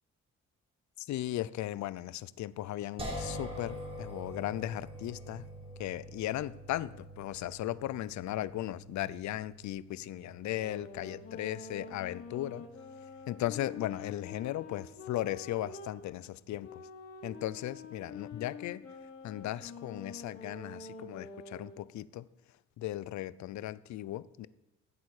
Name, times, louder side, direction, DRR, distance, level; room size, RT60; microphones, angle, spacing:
voice 1, 1.0-5.5 5.8-12.7 13.3-16.8 17.2-18.8 19.2-22.3 22.8-24.5, left 14 dB, 70° left, 18 dB, 0.6 m, -37 dB
sound 1, 3.0-16.1, equal, 20° right, 3.6 m, -47 dB
sound 2, 10.5-16.0 16.6-21.8, left 3 dB, 50° left, 2.9 m, -47 dB
15.0 x 8.3 x 4.9 m, 0.97 s
cardioid pair, 90°, 30 cm